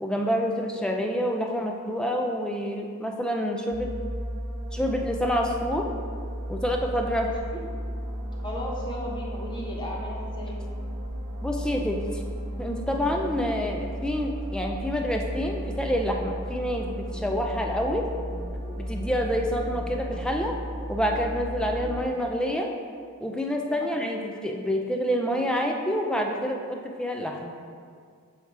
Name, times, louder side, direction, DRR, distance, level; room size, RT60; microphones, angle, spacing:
voice 1, 0.0-3.9 4.7-5.9 6.5-7.3 11.4-12.2 12.6-18.1 18.9-20.6 20.9-22.7 23.2-27.6, equal, 5° left, 1 dB, 0.4 m, -27 dB
sound 1, 3.7-22.0, equal, 40° right, 1.1 m, -34 dB
voice 2, 7.2-7.6 8.4-10.6 23.8-24.1, equal, 20° left, -3 dB, 0.9 m, -36 dB
7.3 x 2.8 x 4.6 m, 2.1 s
head